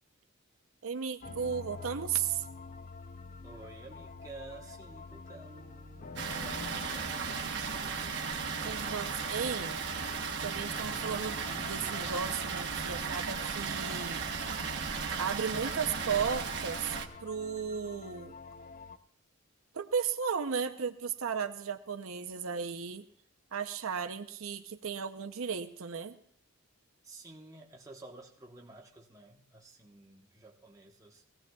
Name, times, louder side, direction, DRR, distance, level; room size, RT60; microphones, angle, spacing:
voice 1, 0.8-2.4 8.6-9.8 10.4-14.2 15.2-18.3 19.7-23.0 23.5-26.2, right 6 dB, 70° right, 7 dB, 0.6 m, -35 dB
sound 1, 1.2-19.0, left 4 dB, 35° left, 0.4 m, -48 dB
sound 2, 2.6-14.8, left 1 dB, 15° left, 7.0 m, -58 dB
voice 2, 3.4-8.2 27.0-31.2, right 2 dB, 15° right, -1 dB, 1.1 m, -52 dB
Water, 6.2-17.1, right 5 dB, 50° right, 1.1 m, -36 dB
21.5 x 16.0 x 2.3 m, 0.63 s
head